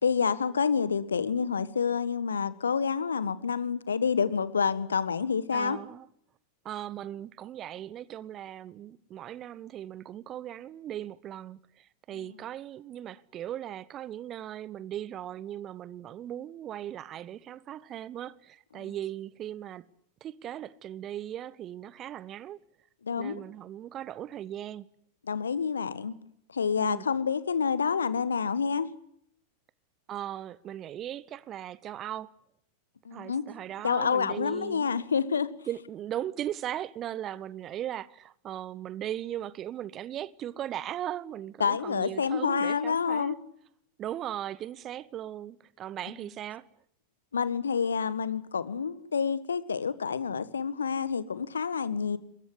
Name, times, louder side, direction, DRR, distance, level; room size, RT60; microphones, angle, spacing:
voice 1, 0.0-5.8 12.1-12.3 18.8-18.9 23.0-23.4 25.3-26.2 26.5-28.9 33.0-33.4 33.8-35.5 41.6-43.4 47.3-52.2, left 6 dB, 70° left, 1.6 m, -28 dB
voice 2, 5.5-6.1 6.6-19.9 20.2-22.6 23.2-24.9 26.8-27.1 30.1-32.3 33.1-34.9 35.7-43.4 44.0-46.6, right 11 dB, 30° right, 1.0 m, -38 dB
23.0 x 21.5 x 9.8 m
figure-of-eight pair, 90°, 0 cm